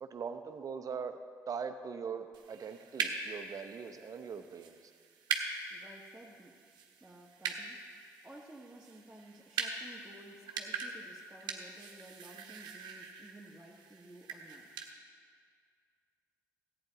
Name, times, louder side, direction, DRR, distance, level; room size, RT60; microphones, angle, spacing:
voice 1, 0.0-1.2 1.5-4.9, right 6 dB, 50° right, 8 dB, 0.8 m, -41 dB
sound 1, 2.3-14.9, right 5 dB, 70° right, 1.1 m, -42 dB
voice 2, 5.7-6.5 7.0-7.8 8.2-14.7, right 1 dB, 10° right, -6 dB, 1.4 m, -54 dB
14.0 x 8.9 x 4.0 m, 2.1 s
hypercardioid pair, 50°, 8 cm